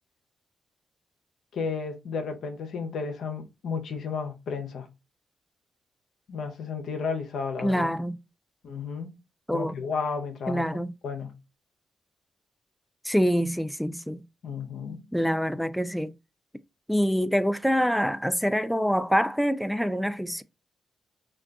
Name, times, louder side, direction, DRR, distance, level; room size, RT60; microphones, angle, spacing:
voice 1, 1.5-4.9 6.3-7.9 8.6-9.1 9.5-11.3 14.4-15.0, left 5 dB, 70° left, 0.6 m, -33 dB
voice 2, 7.6-8.2 9.5-9.8 10.5-10.9 13.0-14.2 15.1-16.1 16.9-20.4, equal, ahead, 0.3 m, -25 dB
2.3 x 2.2 x 3.6 m
hypercardioid pair, 40°, 0 cm